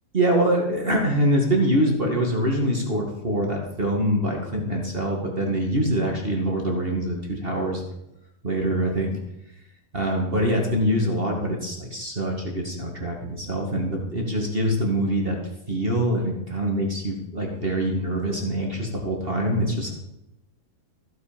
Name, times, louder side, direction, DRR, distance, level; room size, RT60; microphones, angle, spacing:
voice 1, 0.1-7.8 8.4-9.1 9.9-15.4 15.7-19.9, right 1 dB, 30° right, 0 dB, 1.0 m, -24 dB
15.0 x 9.3 x 5.2 m, 0.87 s
omnidirectional pair, 4.4 m